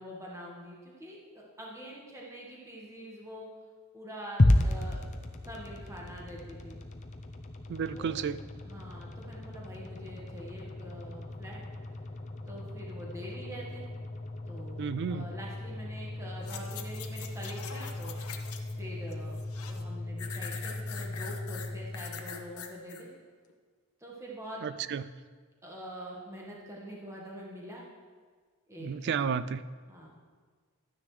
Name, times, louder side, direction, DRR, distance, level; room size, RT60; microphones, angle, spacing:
voice 1, 0.0-3.5 3.9-5.0 5.5-6.8 7.9-8.3 8.6-11.6 12.5-13.9 14.5-14.8 15.1-18.5 18.8-23.1 24.0-24.6 25.6-27.9 28.7-29.2 29.9-30.1, equal, 15° right, -3 dB, 1.4 m, -45 dB
sound 1, 4.4-22.6, left 1 dB, 35° left, 0.6 m, -34 dB
voice 2, 7.7-8.4 14.8-15.3 24.6-25.0 28.8-29.6, right 6 dB, 50° right, 15 dB, 0.3 m, -32 dB
sound 2, 16.4-18.8 19.1-19.8 20.2-23.0 23.5-23.6, left 7 dB, 75° left, 0.8 m, -43 dB
12.5 x 9.6 x 3.2 m, 1.5 s
head